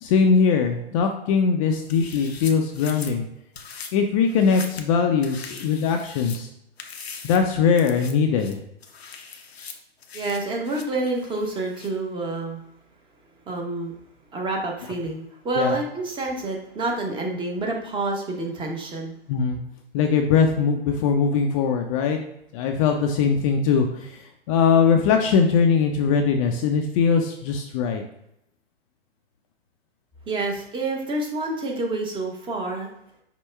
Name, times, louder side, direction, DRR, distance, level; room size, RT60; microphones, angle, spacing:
voice 1, 0.0-3.3 3.9-6.5 7.2-8.6 15.6-15.8 19.3-19.6 19.9-22.2 22.5-24.2 24.5-28.0, left 6 dB, 35° left, 4 dB, 0.5 m, -21 dB
sound 1, 1.8-3.1 3.6-3.9 4.3-4.9 5.2-6.4 6.8-7.4 7.8-8.1 8.4-11.9, left 5 dB, 90° left, 0.7 m, -41 dB
voice 2, 10.1-12.6 13.5-13.9 14.3-19.1 30.3-32.9, right 2 dB, 15° right, 0 dB, 0.8 m, -28 dB
5.5 x 2.1 x 4.4 m, 0.79 s
hypercardioid pair, 120°, 30 cm